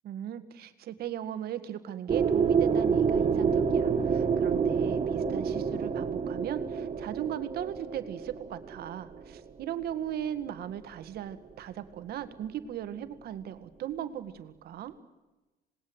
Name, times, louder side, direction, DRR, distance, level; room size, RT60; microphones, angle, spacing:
voice 1, 0.0-15.0, right 10 dB, 65° right, 11 dB, 1.9 m, -37 dB
sound 1, 2.1-9.9, right 6 dB, 35° right, 1.8 m, -28 dB
26.5 x 20.0 x 8.0 m, 1.1 s
cardioid pair, 110°, 17 cm